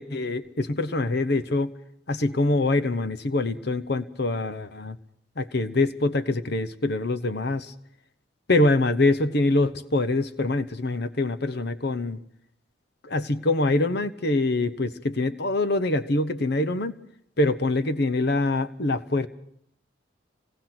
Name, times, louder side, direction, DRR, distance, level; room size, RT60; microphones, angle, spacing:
voice 1, 0.0-1.7 2.1-4.9 5.4-7.7 8.5-12.2 13.1-16.9 17.4-19.3, left 2 dB, 60° left, 12 dB, 1.1 m, -24 dB
26.5 x 18.5 x 6.1 m, 0.73 s
head